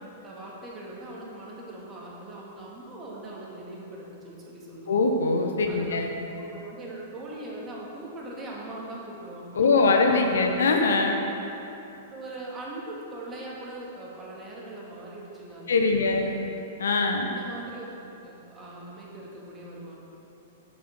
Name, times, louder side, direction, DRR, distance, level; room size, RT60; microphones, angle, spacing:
voice 1, 0.2-5.0 5.7-6.0 6.3-10.6 12.1-16.4 17.2-20.0, right 2 dB, 20° right, -4 dB, 2.4 m, -41 dB
voice 2, 4.9-6.1 9.6-11.2 15.7-16.3 16.8-17.3, left 3 dB, 60° left, 3 dB, 1.0 m, -22 dB
9.7 x 8.6 x 6.1 m, 3.0 s
figure-of-eight pair, 105°, 0 cm